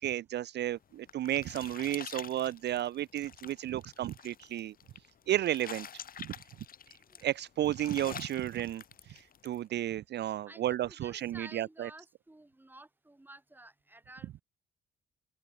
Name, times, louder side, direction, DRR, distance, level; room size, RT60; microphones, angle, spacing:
voice 1, 0.0-4.7 5.3-5.9 6.2-6.3 7.2-8.8 9.1-11.9, right 13 dB, 60° right, 0.5 m, -33 dB
sound 1, 0.7-9.6, left 8 dB, 45° left, 1.0 m, -48 dB
voice 2, 10.5-14.4, right 2 dB, 10° right, 3.1 m, -53 dB
open air
cardioid pair, 90°, 20 cm